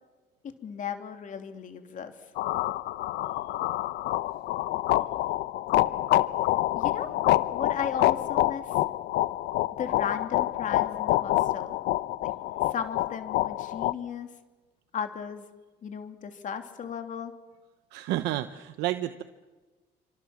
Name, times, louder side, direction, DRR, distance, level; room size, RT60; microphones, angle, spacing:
voice 1, 0.6-2.1 6.7-7.1 7.5-8.8 9.8-11.8 12.2-12.3 12.6-14.3 14.9-15.5 15.8-17.3, left 7 dB, 50° left, 6 dB, 3.1 m, -35 dB
sound 1, 2.4-13.9, left 15 dB, 85° left, 0.8 m, -27 dB
voice 2, 17.9-19.2, right 14 dB, 90° right, 10 dB, 1.1 m, -30 dB
27.5 x 25.5 x 7.3 m, 1.3 s
cardioid pair, 110°, 17 cm